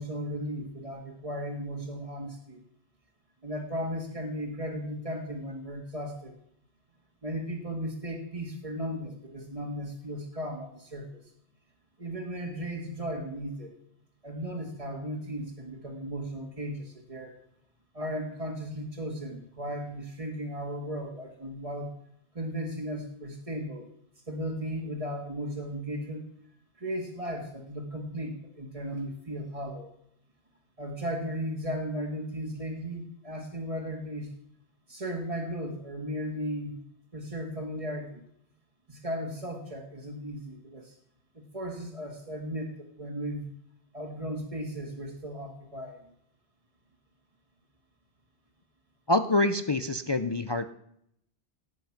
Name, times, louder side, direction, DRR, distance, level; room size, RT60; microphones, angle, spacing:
voice 1, 0.0-2.6 3.4-6.4 7.2-11.2 12.0-13.8 14.2-17.3 17.9-21.9 22.4-23.9 24.3-26.2 26.8-29.9 30.8-34.3 34.9-36.8 37.1-38.2 38.9-40.9 41.4-43.5 43.9-46.0, equal, 35° right, -1 dB, 1.7 m, -36 dB
voice 2, 49.1-50.7, left 2 dB, 30° left, 9 dB, 0.5 m, -26 dB
18.0 x 8.2 x 5.9 m, 0.73 s
omnidirectional pair, 1.1 m